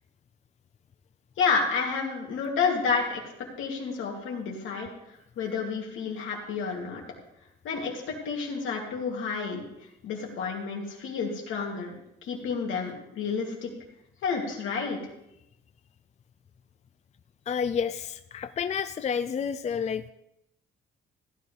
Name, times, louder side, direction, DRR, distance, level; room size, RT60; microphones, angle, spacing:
voice 1, 1.4-3.2 3.6-4.9 5.4-7.0 7.6-7.9 8.2-9.6 10.0-13.7 14.2-15.0, left 5 dB, 80° left, 0 dB, 2.7 m, -30 dB
voice 2, 17.5-20.1, left 7 dB, 35° left, 11 dB, 0.4 m, -30 dB
15.5 x 10.5 x 3.4 m, 0.84 s
cardioid pair, 90°, 20 cm